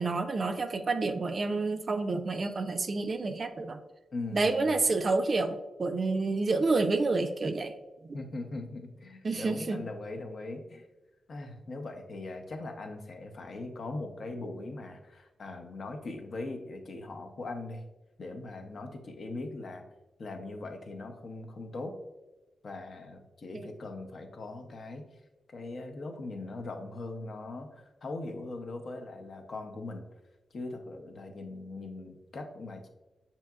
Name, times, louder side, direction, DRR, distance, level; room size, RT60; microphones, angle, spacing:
voice 1, 0.0-3.8 4.3-7.8 9.2-9.8 23.5-23.7, right 3 dB, 45° right, 7 dB, 0.4 m, -29 dB
voice 2, 4.1-4.8 8.1-10.9 11.3-17.8 18.2-19.8 20.2-22.0 22.6-25.0 25.5-30.1 30.5-32.9, left 2 dB, 55° left, 4 dB, 0.7 m, -40 dB
6.8 x 2.8 x 2.3 m, 1.1 s
cardioid pair, 90°, 0 cm